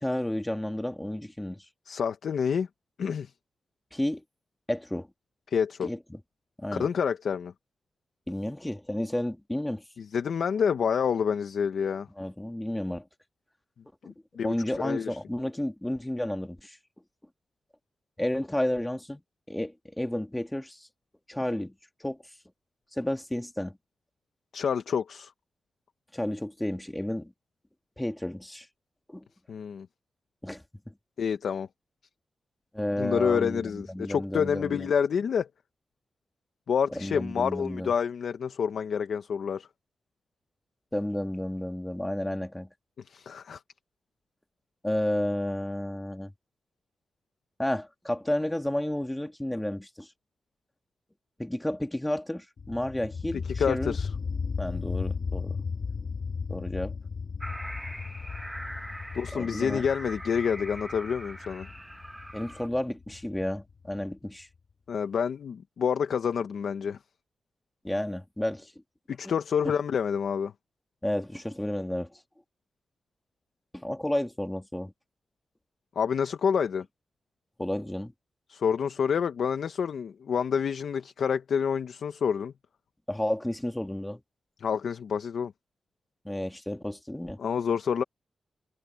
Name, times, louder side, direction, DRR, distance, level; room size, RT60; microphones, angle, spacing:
voice 1, 0.0-1.6 3.9-4.2 4.7-5.1 5.8-6.2 6.6-6.9 8.3-9.8 12.2-13.0 14.4-16.8 18.2-19.2 19.5-20.9 21.3-21.7 22.0-22.2 22.9-23.8 26.1-27.3 28.0-28.7 29.1-29.2 30.4-30.9 32.7-34.9 36.9-37.9 40.9-42.7 44.8-46.3 47.6-50.1 51.4-54.0 54.6-55.6 56.5-56.9 59.3-59.8 62.3-64.5 67.8-68.7 69.2-69.3 71.0-72.2 73.7-74.9 77.6-78.1 83.1-84.2 86.2-87.4, left 1 dB, 10° left, 2.4 m, -31 dB
voice 2, 1.9-2.7 3.0-3.3 5.5-5.9 6.8-7.5 10.0-12.1 14.1-15.2 24.5-25.3 29.5-29.9 31.2-31.7 33.0-35.5 36.7-39.7 43.1-43.6 53.6-54.1 59.1-61.7 64.9-67.0 69.1-70.5 75.9-76.8 78.5-82.5 84.6-85.5 87.4-88.0, left 7 dB, 75° left, 1.0 m, -28 dB
sound 1, 52.6-64.1, left 5 dB, 50° left, 1.9 m, -36 dB
sound 2, 57.4-62.7, right 1 dB, 5° right, 1.1 m, -42 dB
wide cardioid pair, 125°, 0 cm